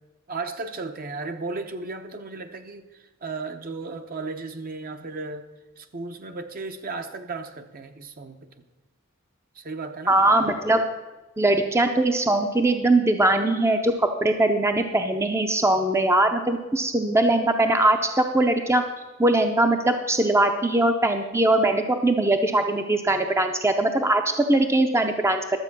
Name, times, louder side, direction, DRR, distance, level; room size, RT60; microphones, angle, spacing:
voice 1, 0.3-5.5 5.8-8.6 9.5-10.2, right 3 dB, 45° right, 7 dB, 0.9 m, -35 dB
voice 2, 10.1-10.8 11.4-18.8 19.2-25.4, right 2 dB, 15° right, 6 dB, 0.6 m, -21 dB
12.0 x 7.5 x 6.0 m, 1.1 s
head